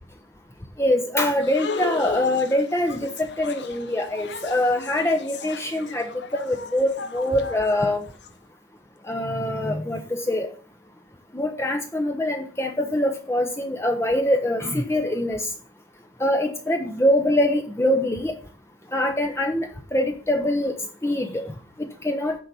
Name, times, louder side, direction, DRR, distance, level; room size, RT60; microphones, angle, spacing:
voice 1, 0.8-3.1 3.4-6.1 6.3-8.0 9.1-10.5 11.3-15.4 16.2-18.3 18.9-20.7 21.0-21.4 22.0-22.3, left 1 dB, 15° left, 4 dB, 0.8 m, -23 dB
sound 1, 1.4-8.3, left 4 dB, 75° left, 0.9 m, -36 dB
10.0 x 4.2 x 6.8 m, 0.40 s
head